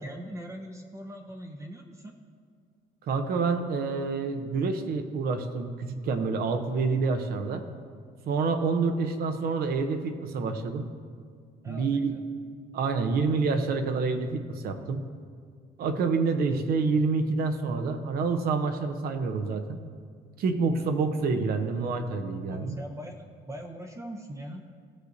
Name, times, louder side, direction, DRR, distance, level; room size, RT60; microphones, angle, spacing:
voice 1, 0.0-2.2 11.6-12.2 22.5-24.6, right 1 dB, 20° right, 3 dB, 0.6 m, -41 dB
voice 2, 3.1-7.6 8.3-10.9 11.7-12.1 12.7-15.0 15.8-19.8 20.4-22.7, right 4 dB, 65° right, 8 dB, 0.8 m, -27 dB
16.0 x 6.5 x 2.7 m, 2.1 s
cardioid pair, 110°, 17 cm